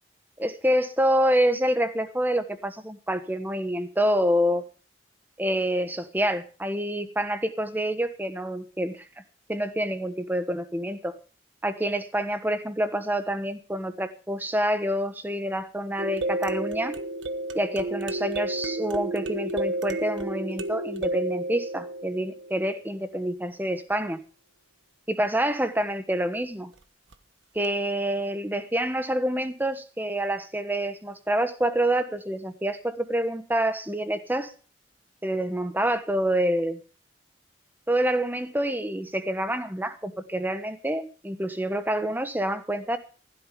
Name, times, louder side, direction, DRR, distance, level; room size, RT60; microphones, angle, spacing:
voice 1, 0.4-4.6 5.4-9.0 9.5-11.1 11.6-16.9 17.5-24.2 25.1-26.7 27.5-34.5 35.2-36.8 37.9-43.0, right 1 dB, 10° right, 10 dB, 1.3 m, -27 dB
sound 1, 16.0-22.9 27.1-27.2 27.6-27.7, right 2 dB, 90° right, 1.3 m, -31 dB
15.5 x 12.0 x 5.1 m, 0.38 s
head